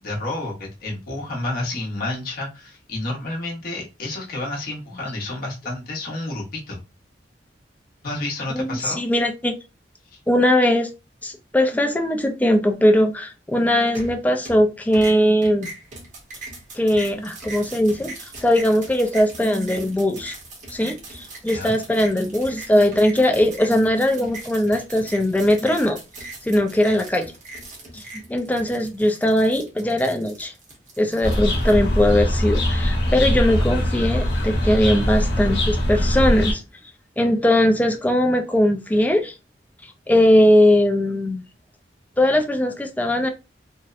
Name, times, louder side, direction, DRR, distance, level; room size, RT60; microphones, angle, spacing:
voice 1, 0.0-6.8 8.0-9.0 10.1-10.2 21.5-21.8, left 2 dB, 55° left, 0.8 m, -30 dB
voice 2, 8.5-9.5 10.3-10.9 11.2-15.7 16.7-18.1 18.4-20.3 20.7-26.0 26.4-27.3 27.9-28.0 28.3-30.5 31.0-36.6 37.2-39.3 40.1-41.4 42.2-43.3, left 1 dB, 10° left, 0.3 m, -20 dB
sound 1, 14.0-14.7 14.9-31.7, right 2 dB, 45° right, 0.8 m, -40 dB
sound 2, 31.2-36.5, equal, 85° left, 0.9 m, -22 dB
2.7 x 2.0 x 2.4 m
head